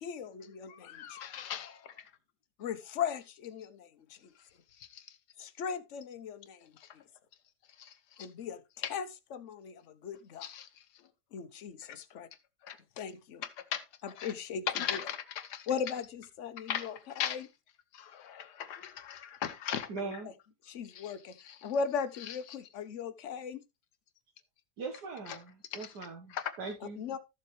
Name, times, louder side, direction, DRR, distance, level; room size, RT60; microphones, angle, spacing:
voice 1, 0.0-1.2 2.6-4.3 5.4-7.0 8.2-8.6 8.9-9.1 9.3-10.5 11.3-12.3 13.0-13.4 14.0-15.0 15.7-17.5 20.0-20.1 20.6-23.6 27.0-27.2, left 6 dB, 55° left, 1.1 m, -38 dB
voice 2, 0.7-2.1 4.8-5.2 6.8-6.9 7.8-8.3 8.8-8.9 10.4-11.0 11.9-12.0 12.6-12.8 13.4-13.9 14.2-14.3 14.7-15.7 16.7-17.5 17.9-20.2 20.9-21.7 22.3-22.4 25.3-25.4 25.7-26.0 26.3-26.5, left 9 dB, 90° left, 1.5 m, -39 dB
voice 3, 19.9-20.3 24.8-27.0, right 4 dB, 80° right, 1.9 m, -41 dB
13.5 x 7.1 x 3.2 m
omnidirectional pair, 1.7 m